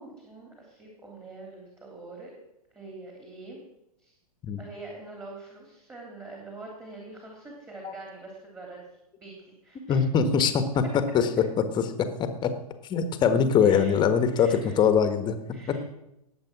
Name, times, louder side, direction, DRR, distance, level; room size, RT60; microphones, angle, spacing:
voice 1, 0.0-2.4 2.7-3.6 4.0-4.1 4.6-8.8 9.2-10.0 13.6-13.9 14.3-14.8 15.5-15.8, right 2 dB, 10° right, -1 dB, 3.2 m, -44 dB
voice 2, 9.9-10.8 11.1-11.3 11.7-11.9 12.2-12.5 12.9-15.4, left 7 dB, 20° left, 9 dB, 1.5 m, -22 dB
19.0 x 7.8 x 6.0 m, 0.87 s
figure-of-eight pair, 110°, 20 cm